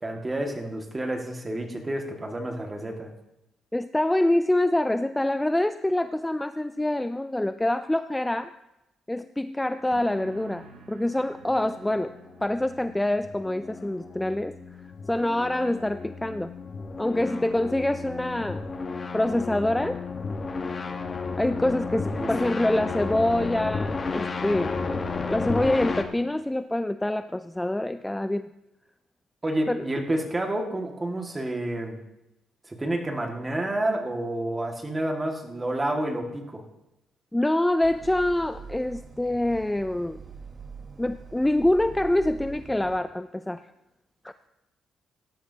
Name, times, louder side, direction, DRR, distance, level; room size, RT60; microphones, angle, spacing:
voice 1, 0.0-3.1 21.9-22.3 29.4-32.0 32.7-36.6, right 1 dB, 20° right, 3 dB, 1.9 m, -29 dB
voice 2, 3.7-8.5 9.1-12.1 12.4-14.6 15.1-16.5 17.0-18.6 19.1-20.0 21.4-28.5 29.7-29.9 37.3-40.2 41.0-43.7 44.2-44.5, left 1 dB, 10° left, 11 dB, 0.4 m, -26 dB
sound 1, 9.9-17.4 17.7-18.2, right 5 dB, 70° right, 2.1 m, -53 dB
sound 2, 11.5-26.0, left 4 dB, 35° left, 1.2 m, -33 dB
sound 3, 37.8-43.0, right 5 dB, 40° right, 1.0 m, -44 dB
17.0 x 12.0 x 2.8 m, 0.92 s
cardioid pair, 90°, 0 cm